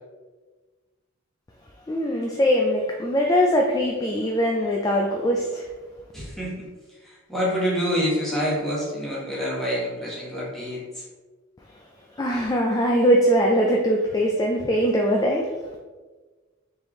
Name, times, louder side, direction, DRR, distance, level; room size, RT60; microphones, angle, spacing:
voice 1, 1.9-5.7 12.2-15.5, equal, 20° left, 0 dB, 0.3 m, -21 dB
voice 2, 6.1-6.7 7.0-11.0, equal, ahead, -6 dB, 1.1 m, -27 dB
4.3 x 3.3 x 3.0 m, 1.3 s
head